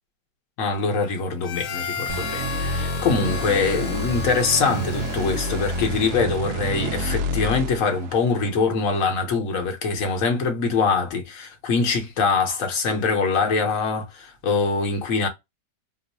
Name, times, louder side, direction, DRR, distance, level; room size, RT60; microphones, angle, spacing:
voice 1, 0.6-15.3, left 4 dB, 55° left, 1.2 m, -23 dB
Harmonica, 1.4-6.4, left 7 dB, 80° left, 1.3 m, -34 dB
sound 1, 2.1-8.6, right 1 dB, 75° right, 0.7 m, -29 dB
3.0 x 2.1 x 4.0 m
omnidirectional pair, 1.9 m